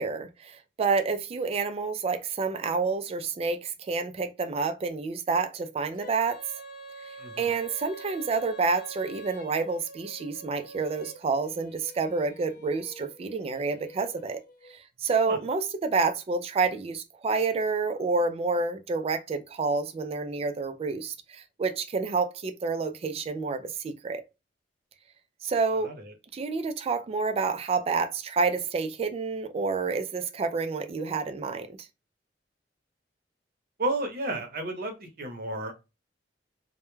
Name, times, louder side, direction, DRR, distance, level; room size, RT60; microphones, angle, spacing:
voice 1, 0.0-6.4 7.4-14.4 14.7-24.2 25.4-25.9 26.3-31.8, right 4 dB, 35° right, 0.3 m, -29 dB
Female singing, 5.9-14.8, right 2 dB, 55° left, 0.6 m, -46 dB
voice 2, 7.2-7.5 15.3-15.4 25.7-26.1 33.8-35.7, right 2 dB, 55° right, 0.7 m, -32 dB
2.2 x 2.1 x 3.0 m
head